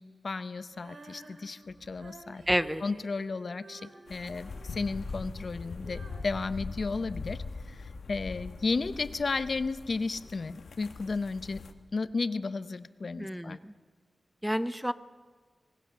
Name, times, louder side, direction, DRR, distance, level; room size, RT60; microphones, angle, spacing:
voice 1, 0.0-2.4 2.8-11.6 11.9-13.6, left 4 dB, 50° left, 13 dB, 0.8 m, -34 dB
Female singing, 0.7-7.7, right 3 dB, 80° right, 2.6 m, -52 dB
voice 2, 2.5-2.8 13.2-13.7 14.4-14.9, equal, ahead, 13 dB, 0.5 m, -29 dB
sound 1, 4.1-11.7, left 4 dB, 80° left, 1.3 m, -42 dB
25.5 x 19.5 x 6.7 m, 1.5 s
wide cardioid pair, 110°, 0 cm